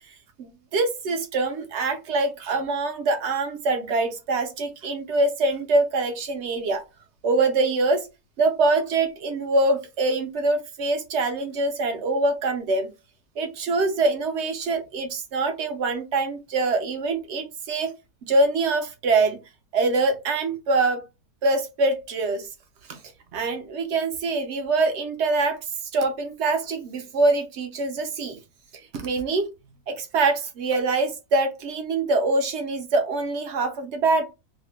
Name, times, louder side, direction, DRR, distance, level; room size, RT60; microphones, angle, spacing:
voice 1, 0.4-6.8 7.2-8.1 8.4-12.9 13.4-17.9 18.2-19.4 19.7-21.0 21.4-22.5 22.9-23.0 23.3-25.6 25.9-28.4 28.9-29.5 29.9-34.3, right 3 dB, 65° right, 0.7 m, -24 dB
2.8 x 2.1 x 3.0 m
omnidirectional pair, 1.6 m